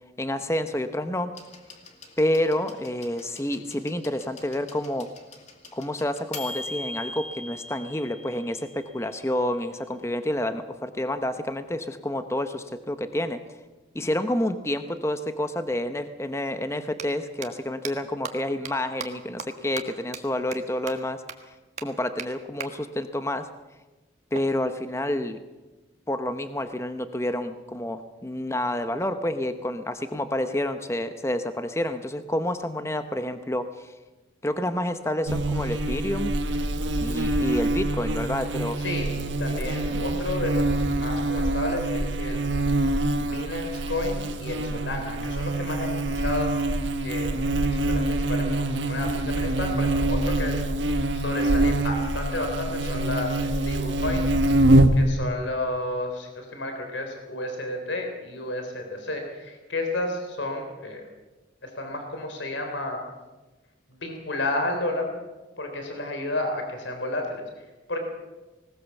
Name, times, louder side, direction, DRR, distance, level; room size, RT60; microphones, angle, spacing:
voice 1, 0.2-1.3 2.2-5.1 5.7-13.4 13.9-21.5 21.8-23.5 24.3-25.4 26.1-33.9 34.4-36.3 37.0-38.8 39.9-40.2, left 1 dB, 15° left, 9 dB, 0.8 m, -29 dB
sound 1, 1.3-9.1 10.2-10.3, left 2 dB, 35° left, 2.4 m, -41 dB
sound 2, 16.9-17.0 17.4-17.5 17.8-17.9 18.2-18.3 18.7-18.8 19.0-19.1 19.4-19.5 19.8-19.9 20.1-20.2 20.5-20.6 20.9-21.0 21.3-21.4 21.8-21.9 22.2-22.3 22.6-22.7 24.3-25.4, right 6 dB, 35° right, 1.6 m, -37 dB
Buzz, 35.3-55.1, right 1 dB, 70° right, 1.4 m, -25 dB
voice 2, 38.8-42.4 43.1-46.7 47.0-47.4 47.7-50.6 51.1-54.3 54.9-61.0 61.6-63.0 64.0-65.1 65.6-68.0, left 2 dB, 70° left, 4 dB, 3.7 m, -31 dB
19.5 x 19.0 x 7.1 m, 1.2 s
head